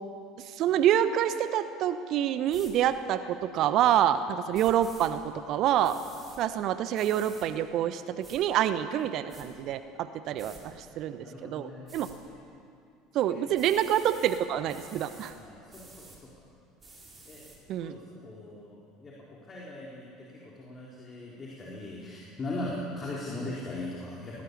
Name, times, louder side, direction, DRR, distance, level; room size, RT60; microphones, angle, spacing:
voice 1, 0.4-6.0 6.4-12.1 13.1-15.3 17.7-17.9, right 10 dB, 50° right, 12 dB, 0.9 m, -27 dB
sound 1, 2.5-2.7 4.5-5.1 5.8-6.4 6.9-7.5 8.2-8.4 9.0-9.4 10.4-10.6 11.9-12.1 13.5-14.4 14.7-15.3 15.7-16.2 16.8-17.6, right 2 dB, 20° right, 5.3 m, -50 dB
voice 2, 10.3-10.6 11.2-11.9 15.3-16.5 17.3-24.4, left 2 dB, 30° left, -5 dB, 4.2 m, -40 dB
20.5 x 19.0 x 7.1 m, 2.4 s
figure-of-eight pair, 65°, 0 cm